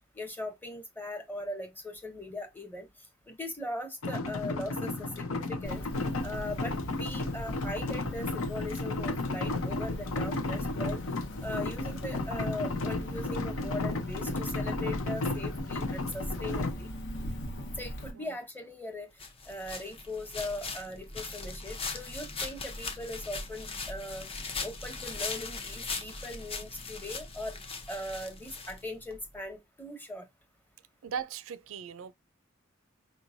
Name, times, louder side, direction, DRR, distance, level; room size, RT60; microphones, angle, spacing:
voice 1, 0.1-2.9 3.3-5.8 6.2-11.0 11.4-16.9 17.8-19.1 19.5-24.3 24.6-30.3, left 1 dB, 10° left, 1.1 m, -39 dB
sound 1, 4.0-16.7, left 2 dB, 80° left, 0.8 m, -33 dB
Cricket, 5.6-18.1, equal, 60° left, 1.2 m, -40 dB
sound 2, 19.2-29.2, left 4 dB, 30° left, 0.7 m, -39 dB
voice 2, 31.0-32.1, right 7 dB, 75° right, 0.4 m, -38 dB
4.8 x 3.1 x 2.5 m
head